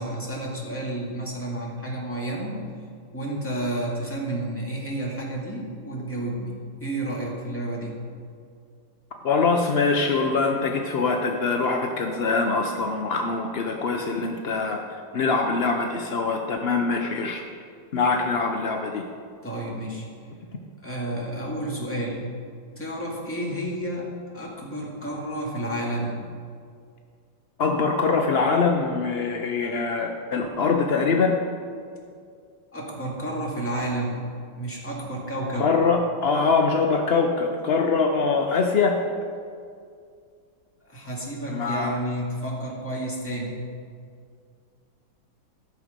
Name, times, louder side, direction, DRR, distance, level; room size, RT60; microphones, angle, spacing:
voice 1, 0.0-2.6 3.1-8.0 19.4-20.1 20.8-22.3 22.8-26.2 32.7-34.2 34.5-35.7 40.9-43.6, right 1 dB, 5° left, -4 dB, 1.9 m, -31 dB
voice 2, 9.2-14.8 15.1-17.4 17.9-19.0 27.6-31.4 35.6-39.0 41.5-41.9, left 4 dB, 75° left, 3 dB, 0.5 m, -23 dB
14.0 x 6.4 x 5.1 m, 2.2 s
omnidirectional pair, 2.0 m